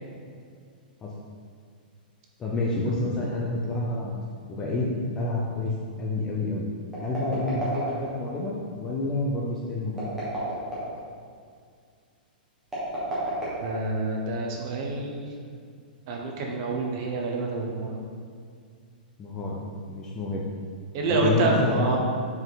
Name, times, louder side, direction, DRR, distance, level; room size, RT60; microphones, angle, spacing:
voice 1, 2.4-4.2 4.5-6.7 7.0-10.1 19.2-20.4 21.1-22.0, left 2 dB, 10° left, -4 dB, 0.4 m, -29 dB
sound 1, 6.9-8.3 9.9-11.0 12.6-14.2, right 1 dB, 5° right, 1.2 m, -31 dB
voice 2, 13.6-15.2 16.1-18.0 20.9-22.0, right 2 dB, 30° right, 0 dB, 0.7 m, -27 dB
5.5 x 4.7 x 3.8 m, 2.2 s
hypercardioid pair, 180°, 5 cm